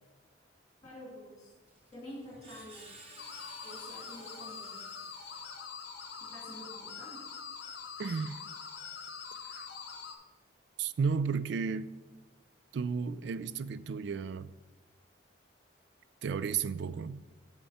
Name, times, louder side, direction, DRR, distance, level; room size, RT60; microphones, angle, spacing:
voice 1, 0.8-1.5 1.9-2.9 3.6-4.9 6.2-7.2, left 1 dB, 20° left, 2.8 m, -48 dB
Screech, 1.7-6.0, right 2 dB, 30° right, 1.1 m, -55 dB
sound 1, 3.2-10.1, left 6 dB, 55° left, 0.9 m, -44 dB
voice 2, 8.0-8.4 9.5-9.7 10.8-11.9 12.7-14.5 16.2-17.2, right 5 dB, 65° right, 0.3 m, -33 dB
8.9 x 6.6 x 4.2 m
head